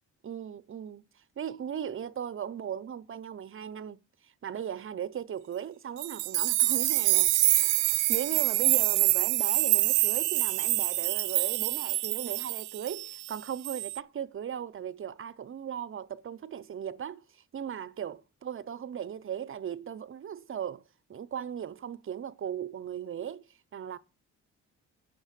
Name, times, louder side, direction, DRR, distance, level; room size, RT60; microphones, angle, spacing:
voice 1, 0.2-1.1 1.4-20.8 21.1-23.4 23.7-24.0, right 9 dB, 45° right, 0.7 m, -37 dB
sound 1, 6.0-13.4 13.6-14.0, right 18 dB, 90° right, 0.5 m, -26 dB
8.4 x 6.5 x 8.1 m
cardioid pair, 90°, 30 cm